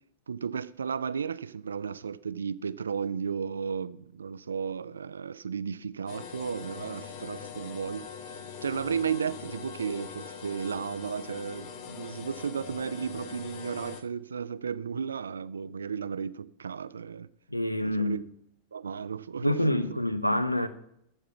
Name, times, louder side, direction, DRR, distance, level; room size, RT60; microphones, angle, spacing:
voice 1, 0.3-17.3 17.8-18.2 18.7-19.5, right 6 dB, 70° right, 0.4 m, -34 dB
sound 1, 6.1-14.0, left 7 dB, 45° left, 1.0 m, -42 dB
voice 2, 17.5-18.2 19.4-20.7, left 1 dB, 90° left, 0.7 m, -27 dB
14.0 x 4.9 x 7.1 m
figure-of-eight pair, 90°, 0 cm